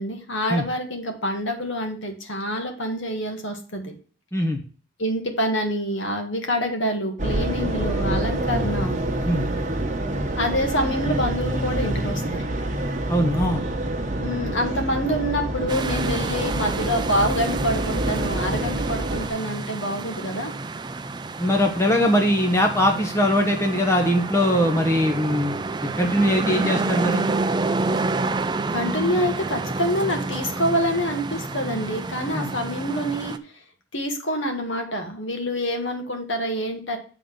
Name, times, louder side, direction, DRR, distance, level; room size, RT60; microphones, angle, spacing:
voice 1, 0.0-3.9 5.0-9.0 10.4-12.2 14.1-20.5 21.9-22.1 28.7-33.4 33.9-37.0, equal, 70° left, 4 dB, 1.8 m, -26 dB
sound 1, 7.2-19.3, right 1 dB, 40° right, 1.2 m, -27 dB
voice 2, 13.1-13.6 21.4-25.6 26.0-27.2 32.3-32.5, equal, 15° left, 3 dB, 1.0 m, -21 dB
sound 2, 15.7-33.4, right 3 dB, 20° right, 0.4 m, -29 dB
8.3 x 3.9 x 6.4 m, 0.39 s
head